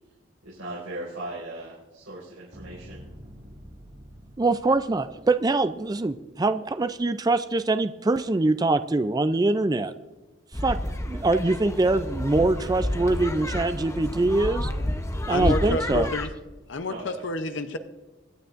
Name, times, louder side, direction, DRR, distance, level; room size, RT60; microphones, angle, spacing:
voice 1, 0.4-3.0 16.8-17.1, right 1 dB, 90° right, -7 dB, 5.0 m, -38 dB
sound 1, 2.5-6.8 13.4-17.2, equal, 45° right, 2.1 m, -48 dB
voice 2, 4.4-9.9 10.6-10.8 11.1-14.7 15.3-16.1, right 2 dB, 20° right, 11 dB, 0.3 m, -23 dB
sound 2, 10.5-16.3, left 1 dB, 15° left, 0.7 m, -30 dB
voice 3, 15.3-16.3 16.7-17.8, left 2 dB, 65° left, 9 dB, 0.7 m, -29 dB
25.0 x 9.3 x 2.5 m, 1.2 s
head